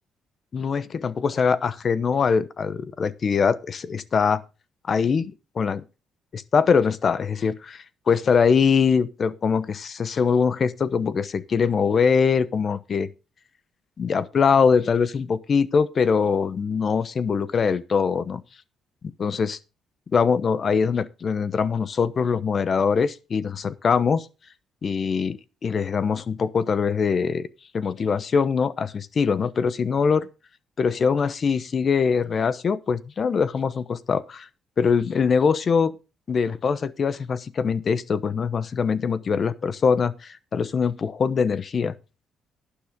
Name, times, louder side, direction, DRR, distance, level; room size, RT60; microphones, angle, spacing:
voice 1, 0.5-4.4 4.9-5.8 6.3-13.1 14.0-18.4 19.0-19.6 20.1-24.3 24.8-27.5 27.7-30.3 30.8-34.5 34.8-35.9 36.3-42.0, left 6 dB, 45° left, 0.9 m, -23 dB
11.5 x 10.0 x 3.7 m
cardioid pair, 90°, 0 cm